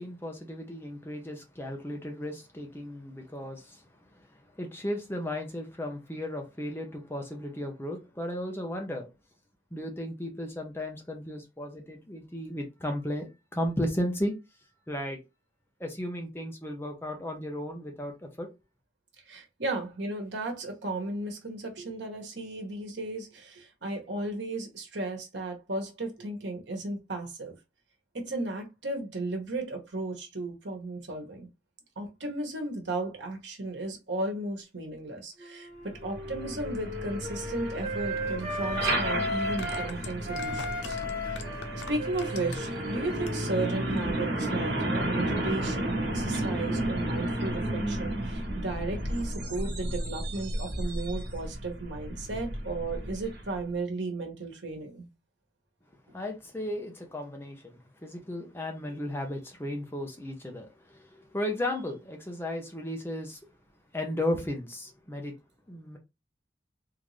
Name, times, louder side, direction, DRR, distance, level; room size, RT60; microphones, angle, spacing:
voice 1, 0.0-3.8 4.6-9.1 9.7-14.3 14.9-15.2 15.8-18.5 56.1-63.4 63.9-65.4 65.7-66.0, left 1 dB, 15° left, 0.7 m, -35 dB
voice 2, 19.3-27.5 28.1-31.5 32.0-41.0 41.3-41.4 41.9-55.1 56.1-56.2, right 2 dB, 85° right, 1.2 m, -35 dB
Wind instrument woodwind instrument, 35.4-39.9 40.2-44.7, left 1 dB, 35° right, 1.3 m, -36 dB
Truck, 35.9-53.6, right 1 dB, 65° right, 1.2 m, -32 dB
sound 1, 38.4-38.5 39.4-42.8 43.2-43.7 44.0-44.1, left 4 dB, 85° left, 0.6 m, -43 dB
3.7 x 2.6 x 3.1 m
head